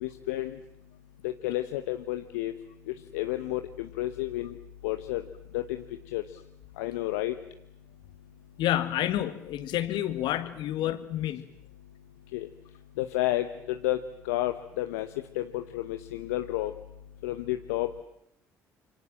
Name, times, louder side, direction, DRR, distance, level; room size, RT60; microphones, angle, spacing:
voice 1, 0.0-0.5 1.2-2.5 3.1-4.5 4.8-5.2 5.5-5.7 6.1-6.2 6.8-7.3 12.3-12.5 13.0-14.0 14.3-15.1 15.4-16.7 17.2-17.9, left 16 dB, 85° left, 8 dB, 0.9 m, -30 dB
voice 2, 8.6-11.4, left 12 dB, 70° left, 12 dB, 1.8 m, -29 dB
26.5 x 24.5 x 7.5 m, 0.80 s
hypercardioid pair, 55°, 8 cm